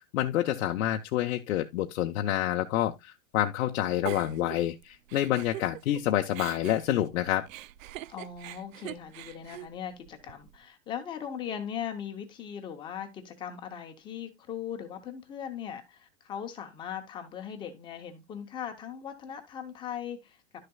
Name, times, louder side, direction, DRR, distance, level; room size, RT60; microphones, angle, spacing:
voice 1, 0.1-7.5, left 13 dB, 75° left, 0.8 m, -28 dB
Giggle, 4.1-6.0 6.3-10.6, right 15 dB, 75° right, 0.5 m, -43 dB
voice 2, 8.1-20.4, left 8 dB, 10° left, 0.7 m, -39 dB
11.5 x 6.6 x 2.3 m
supercardioid pair, 175°, 40 cm